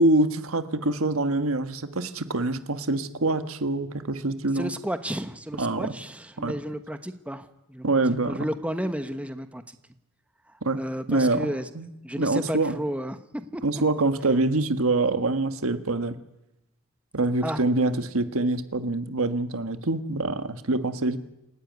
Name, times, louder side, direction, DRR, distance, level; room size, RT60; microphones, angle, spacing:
voice 1, 0.0-4.7 5.6-5.9 6.4-6.5 7.8-8.4 10.6-10.8 11.1-11.5 11.7-11.9 12.1-12.8 13.6-16.1 17.1-21.2, right 2 dB, 75° right, 9 dB, 1.5 m, -25 dB
voice 2, 4.5-7.8 8.3-9.6 10.7-11.7 12.0-13.6 17.4-17.6, equal, 5° right, 9 dB, 1.0 m, -32 dB
28.0 x 15.0 x 9.5 m, 0.92 s
head